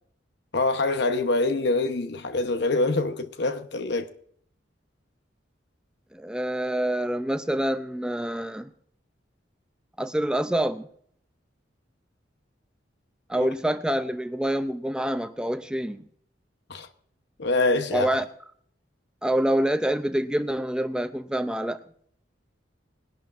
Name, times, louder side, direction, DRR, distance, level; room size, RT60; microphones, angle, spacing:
voice 1, 0.5-4.1 13.4-13.5 16.7-16.9 17.4-18.1, left 2 dB, 65° left, 1.0 m, -25 dB
voice 2, 6.1-8.7 10.0-10.9 13.3-16.1 17.9-18.2 19.2-21.8, right 1 dB, 5° right, 0.4 m, -26 dB
20.5 x 11.5 x 2.5 m
head